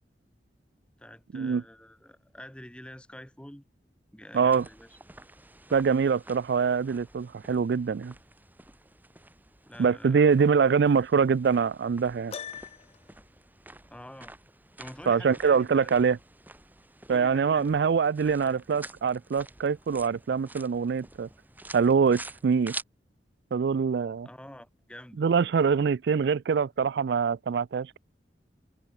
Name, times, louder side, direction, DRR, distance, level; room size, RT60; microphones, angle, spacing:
voice 1, 1.0-3.6 4.1-5.0 9.6-10.6 13.9-14.3 14.8-15.9 17.1-17.9 18.2-18.6 24.2-25.2, left 1 dB, 5° left, 1.6 m, -46 dB
sound 1, 4.3-22.8, right 2 dB, 10° right, 2.4 m, -48 dB
voice 2, 4.3-4.6 5.7-8.1 9.8-12.3 15.1-16.2 17.1-21.3 21.7-22.7 23.5-24.3 25.2-28.0, right 6 dB, 65° right, 0.4 m, -24 dB
Piano, 12.3-13.2, left 7 dB, 35° left, 0.4 m, -40 dB
head